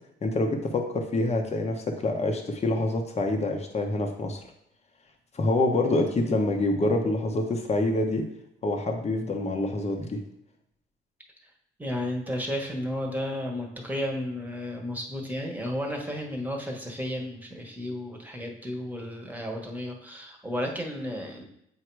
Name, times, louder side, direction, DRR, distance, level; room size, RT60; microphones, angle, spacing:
voice 1, 0.2-4.4 5.3-8.3 8.6-10.2, left 2 dB, 30° left, 2 dB, 1.0 m, -26 dB
voice 2, 11.8-21.4, left 1 dB, 10° right, 0 dB, 1.3 m, -33 dB
7.9 x 2.9 x 4.6 m, 0.76 s
cardioid pair, 90°, 20 cm